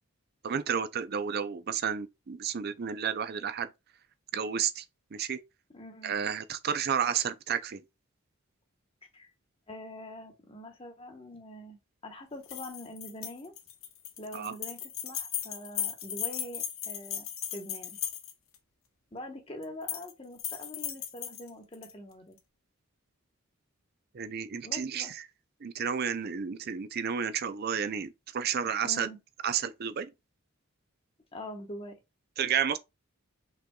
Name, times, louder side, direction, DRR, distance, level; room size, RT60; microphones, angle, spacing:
voice 1, 0.4-3.7 4.3-4.8 5.1-5.4 6.0-7.8 14.3-14.5 24.1-25.2 25.6-29.1 29.4-30.1 32.4-32.8, right 7 dB, 50° right, 0.4 m, -31 dB
voice 2, 5.7-6.1 9.1-9.3 9.7-11.8 12.0-13.5 14.2-18.0 19.1-22.4 24.6-25.1 28.8-29.2 31.3-32.0, left 1 dB, 25° left, 1.1 m, -44 dB
sound 1, 12.4-18.6 19.6-20.1 20.4-21.9, left 10 dB, 75° left, 1.1 m, -37 dB
5.6 x 3.7 x 2.3 m
head